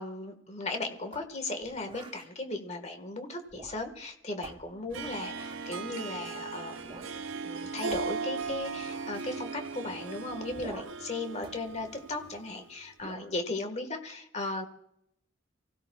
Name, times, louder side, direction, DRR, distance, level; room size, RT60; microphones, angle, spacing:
voice 1, 0.0-7.1 7.4-14.7, left 2 dB, 35° left, 6 dB, 1.6 m, -37 dB
sound 1, 1.1-2.3 3.4-4.1 4.4-5.8 6.8-7.2 7.4-7.5 7.9-9.4 10.5-11.1 11.4-12.5 13.0-13.4, right 2 dB, 25° right, 0.9 m, -49 dB
sound 2, 4.9-10.9, right 1 dB, 10° right, 5.9 m, -57 dB
Harp, 4.9-12.6, right 4 dB, 80° right, 0.7 m, -38 dB
29.5 x 16.5 x 2.4 m, 0.76 s
head